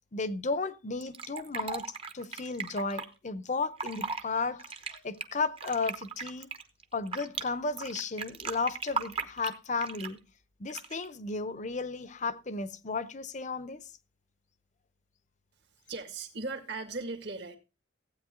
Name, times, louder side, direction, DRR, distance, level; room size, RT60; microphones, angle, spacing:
voice 1, 0.1-1.8 2.1-6.5 6.9-10.2 10.6-13.9, left 3 dB, 40° left, 0.7 m, -34 dB
Fill (with liquid), 1.0-3.0 3.6-4.2 4.6-7.4 7.8-10.2 10.7-11.1, right 4 dB, 30° right, 0.9 m, -37 dB
voice 2, 15.9-17.6, right 3 dB, 60° right, 1.9 m, -37 dB
15.0 x 8.7 x 3.7 m
head